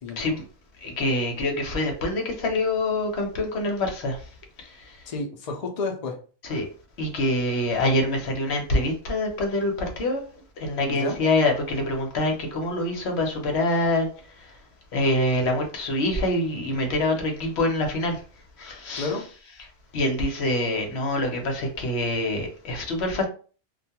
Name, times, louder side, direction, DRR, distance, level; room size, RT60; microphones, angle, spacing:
voice 1, 0.0-0.3 5.1-6.1 10.9-11.2 19.0-19.2, left 3 dB, 80° left, 0.3 m, -31 dB
voice 2, 0.8-4.2 6.5-6.7 7.0-10.2 10.6-14.1 14.9-18.2 18.6-19.1 19.9-23.3, left 1 dB, 60° left, 0.9 m, -25 dB
2.4 x 2.2 x 2.8 m
omnidirectional pair, 1.4 m